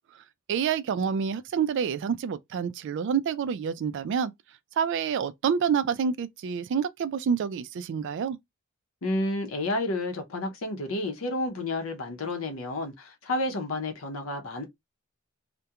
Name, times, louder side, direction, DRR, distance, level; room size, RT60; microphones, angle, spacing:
voice 1, 0.5-4.3 4.8-8.4, right 7 dB, 60° right, 0.3 m, -28 dB
voice 2, 9.0-14.6, left 2 dB, 75° left, 0.7 m, -30 dB
2.3 x 2.2 x 2.8 m
head